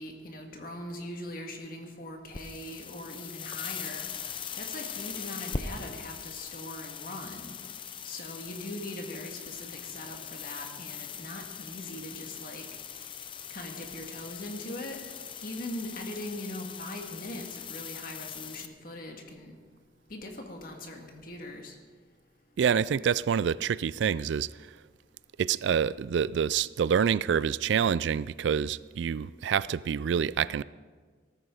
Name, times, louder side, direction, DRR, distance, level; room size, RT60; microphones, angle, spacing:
voice 1, 0.0-4.1 4.5-7.5 8.0-12.6 13.5-15.0 15.4-19.6 20.1-21.7, left 1 dB, 50° left, 2.0 m, -41 dB
sound 1, 2.3-18.7, left 7 dB, 30° left, 0.6 m, -41 dB
voice 2, 22.6-24.7 25.4-30.6, right 7 dB, 75° right, 0.3 m, -27 dB
18.5 x 14.0 x 3.9 m
head